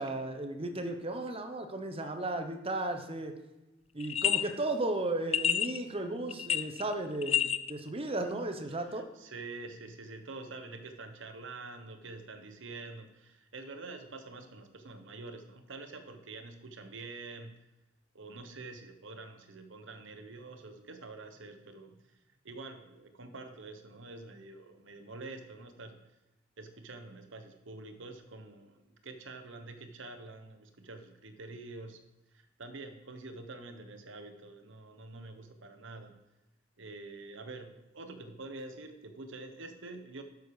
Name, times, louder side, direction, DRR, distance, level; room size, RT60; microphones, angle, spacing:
voice 1, 0.0-3.3 3.9-9.1, right 2 dB, 30° right, 6 dB, 1.0 m, -35 dB
sound 1, 4.0-4.4 5.3-5.8 6.3-6.9 7.2-7.7, left 9 dB, 30° left, 0.4 m, -28 dB
voice 2, 8.7-17.6 18.1-26.1 26.6-32.0 32.3-36.2 36.8-40.2, right 3 dB, 65° right, 7 dB, 1.2 m, -46 dB
12.0 x 6.5 x 4.9 m, 1.0 s
head